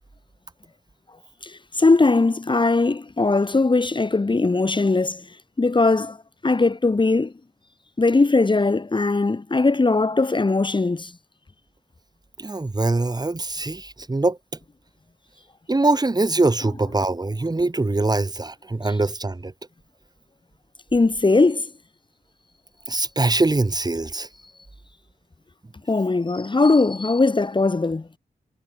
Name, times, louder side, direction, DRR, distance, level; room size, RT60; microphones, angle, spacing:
voice 1, 1.4-5.3 5.6-6.2 6.4-7.3 8.0-11.1 18.8-19.0 20.9-21.7 25.9-28.1, left 3 dB, 30° left, 2.1 m, -20 dB
voice 2, 12.4-14.4 15.7-19.5 22.9-24.3, right 2 dB, 25° right, 4.4 m, -23 dB
wide cardioid pair, 125°, 17 cm